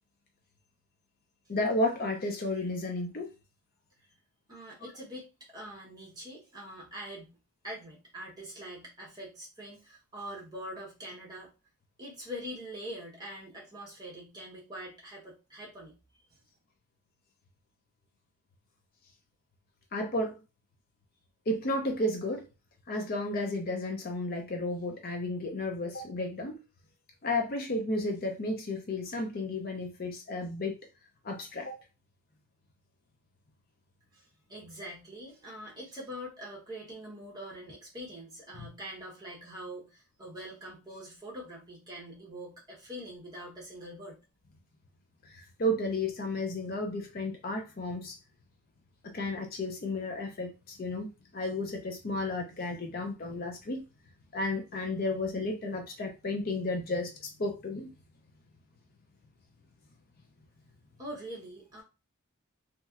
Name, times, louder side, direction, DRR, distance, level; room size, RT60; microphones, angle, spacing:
voice 1, 1.5-3.3 19.9-20.4 21.5-22.5 22.9-26.6 27.2-30.8 31.2-31.8 45.2-48.2 49.0-51.1 51.3-53.8 54.3-57.9, left 1 dB, 40° left, 3 dB, 0.5 m, -33 dB
voice 2, 4.5-7.3 7.6-11.5 12.0-16.3 34.1-44.2 61.0-61.8, equal, 20° right, -3 dB, 1.1 m, -44 dB
3.0 x 2.8 x 2.4 m, 0.29 s
head